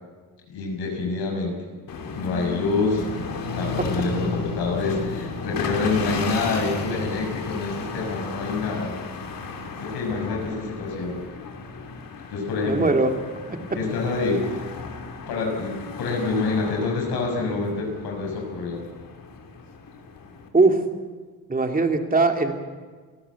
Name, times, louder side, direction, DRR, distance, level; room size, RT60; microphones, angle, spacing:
voice 1, 0.5-1.5 2.2-3.1 3.5-8.9 9.8-11.2 12.3-12.9 13.7-14.4 15.3-18.8, left 3 dB, 90° left, 1 dB, 6.2 m, -27 dB
sound 1, 1.9-20.5, left 3 dB, 60° left, 3.4 m, -34 dB
voice 2, 12.6-13.1 13.5-13.6 20.5-20.8 21.5-22.5, right 3 dB, 20° right, 5 dB, 2.7 m, -20 dB
29.5 x 14.0 x 8.4 m, 1.5 s
cardioid pair, 105°, 37 cm